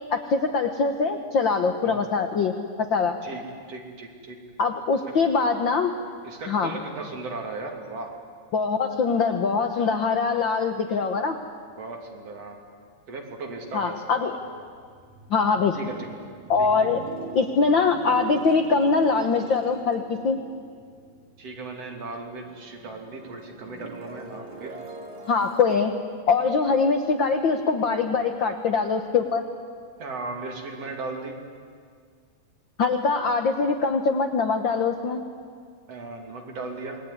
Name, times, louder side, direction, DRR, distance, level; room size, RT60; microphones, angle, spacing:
voice 1, 0.1-2.5 2.9-3.2 4.6-5.9 6.5-6.7 8.5-11.4 13.7-14.4 15.3-15.8 16.5-17.0 17.3-20.4 25.3-25.9 26.3-29.4 32.8-35.2, left 4 dB, 80° left, 6 dB, 1.0 m, -23 dB
voice 2, 3.7-4.4 6.2-8.1 11.8-12.6 13.1-14.0 15.7-16.1 16.8-16.9 21.4-24.8 30.0-31.4 35.9-37.0, right 3 dB, 45° right, 2 dB, 3.7 m, -36 dB
sound 1, 14.4-22.0 22.4-27.5, right 5 dB, 85° right, 4.8 m, -43 dB
28.0 x 21.0 x 9.8 m, 2.1 s
omnidirectional pair, 4.0 m